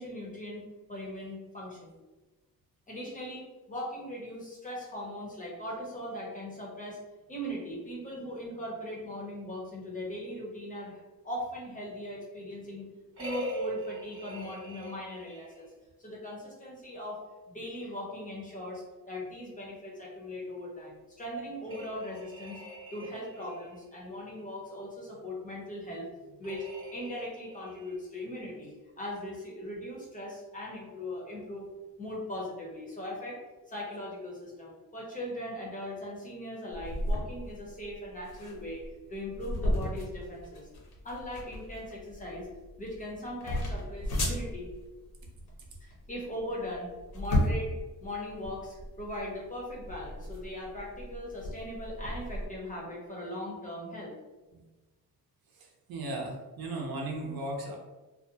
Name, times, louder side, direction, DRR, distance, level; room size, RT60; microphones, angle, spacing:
voice 1, 0.0-2.0 2.9-7.0 7.3-12.8 13.2-15.7 16.0-22.6 22.9-31.7 32.0-33.4 33.7-40.7 41.0-42.5 42.8-44.7 45.8-47.7 48.0-54.1, left 1 dB, 20° left, -4 dB, 0.6 m, -39 dB
sound 1, 13.2-15.6 21.7-23.8 26.4-27.9, right 1 dB, 35° right, 0.7 m, -42 dB
sound 2, 36.7-52.5, left 1 dB, 70° left, 0.8 m, -35 dB
voice 2, 55.6-57.8, right 2 dB, 70° right, 0 dB, 0.6 m, -36 dB
2.4 x 2.2 x 2.7 m, 1.2 s
wide cardioid pair, 155°, 38 cm